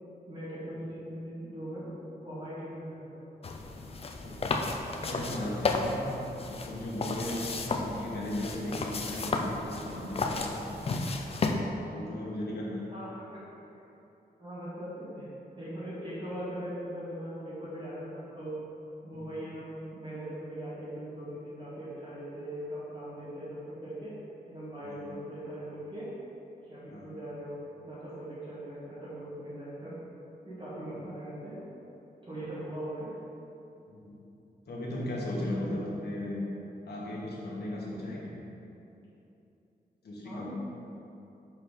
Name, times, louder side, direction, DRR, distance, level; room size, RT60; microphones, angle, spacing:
voice 1, 0.3-1.9 2.2-3.2 12.9-13.4 13.7-13.8 14.4-15.3 15.6-18.5 19.0-24.1 24.5-26.1 26.6-27.6 27.8-30.0 30.4-31.6 32.3-33.1 35.3-35.8 40.2-40.5, right 1 dB, 30° right, -11 dB, 1.6 m, -40 dB
sound 1, 3.4-11.5, left 3 dB, 35° left, 0.4 m, -33 dB
voice 2, 4.2-7.4 7.7-11.0 11.3-11.4 11.9-12.9 19.1-19.3 24.8-25.1 26.9-27.1 33.9-34.2 34.7-36.4 36.8-38.4 40.0-40.5, left 1 dB, 80° left, -4 dB, 1.5 m, -37 dB
6.3 x 4.6 x 5.1 m, 2.9 s
wide cardioid pair, 175°, 16 cm